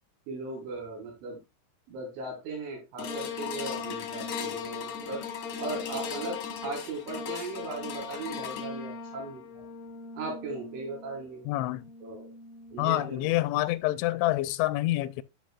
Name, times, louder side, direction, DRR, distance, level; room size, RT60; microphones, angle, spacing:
voice 1, 0.3-1.4 1.9-5.3 5.6-9.6 10.2-11.5 12.0-12.3 12.7-13.4, right 3 dB, 85° right, 5.8 m, -38 dB
sound 1, 3.0-13.4 13.9-14.0, left 6 dB, 70° left, 1.7 m, -38 dB
voice 2, 11.5-11.8 12.8-15.2, left 17 dB, 85° left, 2.8 m, -27 dB
13.0 x 5.1 x 2.3 m
omnidirectional pair, 5.3 m